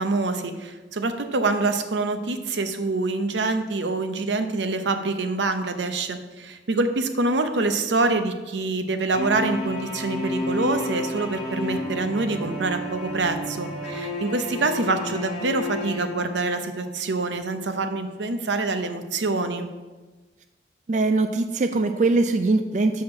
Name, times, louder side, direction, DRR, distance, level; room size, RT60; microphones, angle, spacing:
voice 1, 0.0-19.7, right 3 dB, 85° right, 8 dB, 0.7 m, -25 dB
sound 1, 9.1-16.9, left 1 dB, 5° right, 3.0 m, -31 dB
voice 2, 20.9-23.0, right 3 dB, 40° right, 8 dB, 0.3 m, -22 dB
6.1 x 5.7 x 6.5 m, 1.2 s
head